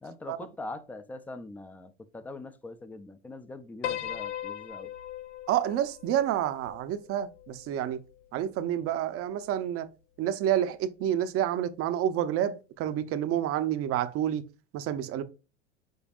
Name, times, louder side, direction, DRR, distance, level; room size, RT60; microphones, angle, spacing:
voice 1, 0.0-4.9, left 2 dB, 5° left, 0.3 m, -42 dB
Piano, 3.8-8.2, left 11 dB, 85° left, 0.5 m, -39 dB
voice 2, 5.5-8.0 8.3-9.9 10.2-14.4 14.7-15.2, right 11 dB, 40° right, 0.6 m, -29 dB
5.4 x 4.0 x 2.4 m
hypercardioid pair, 90°, 35 cm